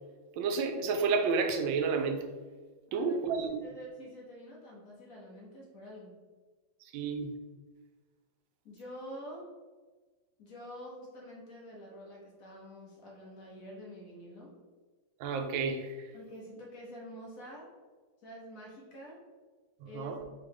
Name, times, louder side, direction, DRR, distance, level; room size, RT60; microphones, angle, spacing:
voice 1, 0.4-2.2 2.9-3.5 6.9-7.3 15.2-16.1 19.8-20.2, right 4 dB, 80° right, 6 dB, 1.3 m, -30 dB
voice 2, 2.9-6.1 8.6-9.5 10.4-14.5 16.1-17.7 18.2-19.2 19.9-20.2, equal, 55° left, -3 dB, 1.1 m, -47 dB
3.7 x 3.3 x 3.5 m, 1.3 s
omnidirectional pair, 2.1 m